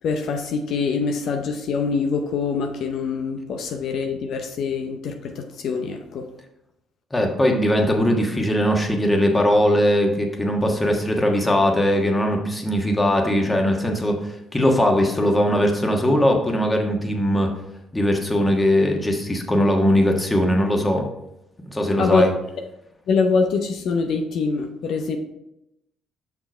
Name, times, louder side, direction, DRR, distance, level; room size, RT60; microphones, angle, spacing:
voice 1, 0.0-6.3 22.0-22.3 23.1-25.2, left 4 dB, 65° left, 5 dB, 0.6 m, -24 dB
voice 2, 7.1-17.5 17.9-21.0 21.6-22.3, equal, 15° left, 2 dB, 1.3 m, -20 dB
5.9 x 4.5 x 4.4 m, 0.86 s
supercardioid pair, 75°, 0 cm